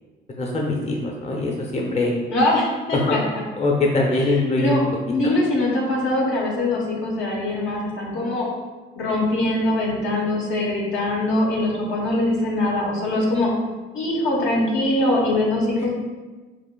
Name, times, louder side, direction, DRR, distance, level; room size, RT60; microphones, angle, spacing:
voice 1, 0.4-2.1 2.9-3.2 3.5-4.8 5.2-5.3, left 2 dB, 35° left, -1 dB, 0.6 m, -22 dB
voice 2, 2.3-3.2 4.1-4.3 4.6-4.8 5.1-8.4 9.0-13.5 13.9-15.9, left 1 dB, 80° left, -3 dB, 1.0 m, -22 dB
5.7 x 2.4 x 2.2 m, 1.3 s
cardioid pair, 90°, 20 cm